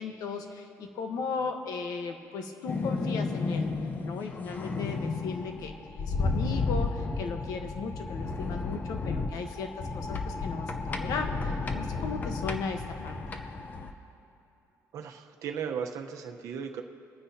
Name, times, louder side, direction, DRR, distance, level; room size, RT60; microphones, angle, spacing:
voice 1, 0.0-3.7 4.0-13.2, left 5 dB, 85° left, 5 dB, 1.1 m, -36 dB
sound 1, 2.7-13.9, left 3 dB, 30° left, 0.7 m, -32 dB
voice 2, 14.9-16.8, right 7 dB, 65° right, 4 dB, 0.9 m, -36 dB
23.0 x 9.5 x 2.8 m, 2.8 s
cardioid pair, 160°, 6 cm